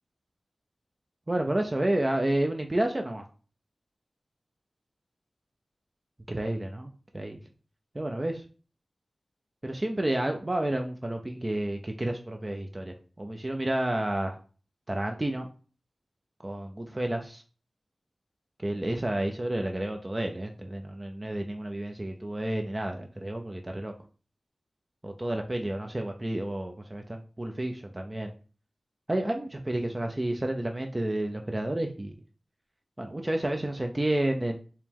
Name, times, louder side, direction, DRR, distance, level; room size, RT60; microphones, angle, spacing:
voice 1, 1.3-3.3 6.3-7.4 7.9-8.4 9.6-14.4 14.9-15.5 16.4-17.4 18.6-23.9 25.0-28.3 29.1-32.1 33.0-34.6, right 1 dB, 25° right, 4 dB, 0.4 m, -30 dB
4.5 x 2.0 x 3.5 m, 0.37 s
wide cardioid pair, 95°, 0 cm